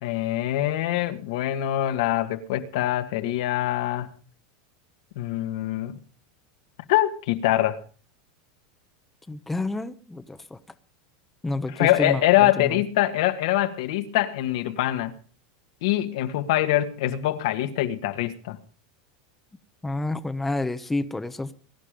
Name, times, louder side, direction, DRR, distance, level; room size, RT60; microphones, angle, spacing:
voice 1, 0.0-4.1 5.2-6.0 6.9-7.8 11.7-15.1 15.8-18.6, left 14 dB, 70° left, 1.9 m, -24 dB
voice 2, 9.3-10.6 11.4-12.8 19.8-21.5, left 2 dB, 5° left, 0.9 m, -29 dB
21.5 x 11.0 x 5.2 m
supercardioid pair, 155°, 3 cm